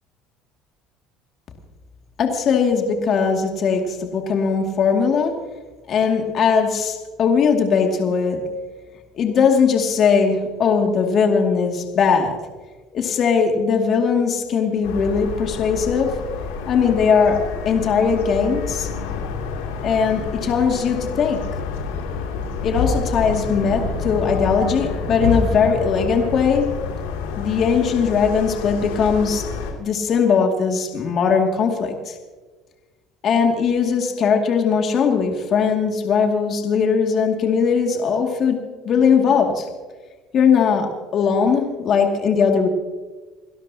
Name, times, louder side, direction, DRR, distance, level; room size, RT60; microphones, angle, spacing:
voice 1, 2.2-5.4 5.9-8.4 9.2-12.4 12.9-16.2 16.7-18.9 19.8-21.4 22.6-26.7 27.4-29.4 29.8-32.2 33.2-38.6 38.8-39.7 40.3-42.7, left 6 dB, 50° left, 2 dB, 2.4 m, -19 dB
sound 1, 14.8-29.7, left 5 dB, 90° left, 2.8 m, -28 dB
29.0 x 12.5 x 2.9 m, 1.3 s
supercardioid pair, 90°, 0 cm